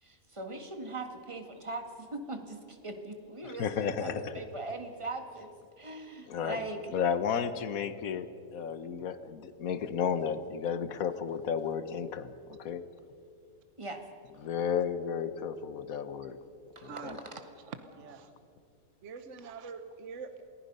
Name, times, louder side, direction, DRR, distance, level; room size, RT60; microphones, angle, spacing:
voice 1, 0.0-5.5 5.8-6.8 13.8-14.0 16.7-17.3, right 2 dB, 20° right, 5 dB, 1.7 m, -40 dB
voice 2, 3.4-4.4 6.2-12.3 12.6-12.8 14.3-16.4 16.8-17.2, left 7 dB, 75° left, 12 dB, 1.4 m, -33 dB
voice 3, 16.9-17.2 17.7-18.3 19.0-20.3, right 5 dB, 60° right, 9 dB, 1.4 m, -44 dB
28.0 x 20.0 x 5.5 m, 2.5 s
omnidirectional pair, 1.5 m